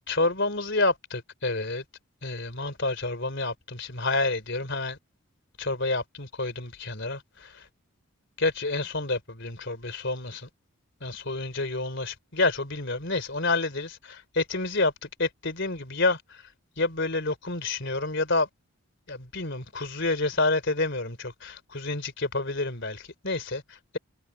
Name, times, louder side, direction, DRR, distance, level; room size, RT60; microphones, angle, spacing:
voice 1, 0.1-1.8 2.2-5.0 5.6-7.6 8.4-10.5 11.0-16.4 16.8-18.5 19.1-23.8, left 2 dB, 55° left, 3.9 m, -29 dB
head